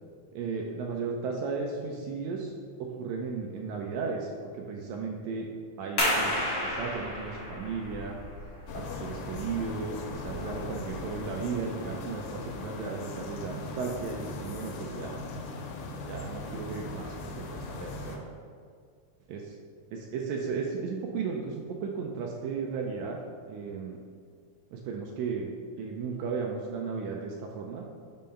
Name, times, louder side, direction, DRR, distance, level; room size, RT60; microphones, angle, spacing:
voice 1, 0.3-2.5 2.8-5.5 5.8-6.3 6.6-8.2 8.7-15.2 16.1-17.1 17.5-18.2 19.3-19.5 19.9-23.2 23.5-24.0 24.7-25.5 25.8-27.9, right 5 dB, 80° right, 0 dB, 1.6 m, -35 dB
sound 1, 6.0-11.3, left 1 dB, 50° left, 1.2 m, -33 dB
sound 2, 8.7-18.2, left 3 dB, 85° left, 2.1 m, -39 dB
5.1 x 3.7 x 5.6 m, 2.1 s
omnidirectional pair, 3.6 m